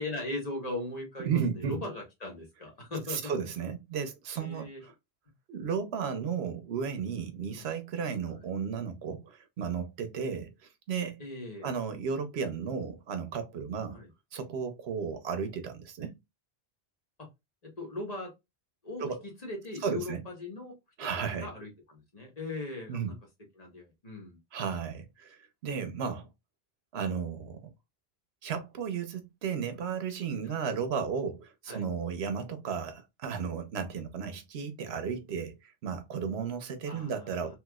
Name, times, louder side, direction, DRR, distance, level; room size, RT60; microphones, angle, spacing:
voice 1, 0.0-3.3 4.4-4.8 7.5-7.7 8.3-8.4 11.2-11.7 13.9-14.1 17.8-18.3 18.8-20.7 21.4-23.1 23.6-24.4 30.4-30.5 31.7-31.8 36.9-37.5, left 2 dB, 40° left, 1.4 m, -39 dB
voice 2, 1.2-1.8 3.1-4.9 5.5-10.5 10.9-11.2 11.6-14.0 14.3-16.2 19.0-19.2 19.8-20.2 21.0-21.5 22.9-23.1 24.5-26.3 26.9-27.7 28.4-37.6, right 6 dB, 85° right, 1.0 m, -34 dB
3.1 x 3.0 x 2.2 m
omnidirectional pair, 1.0 m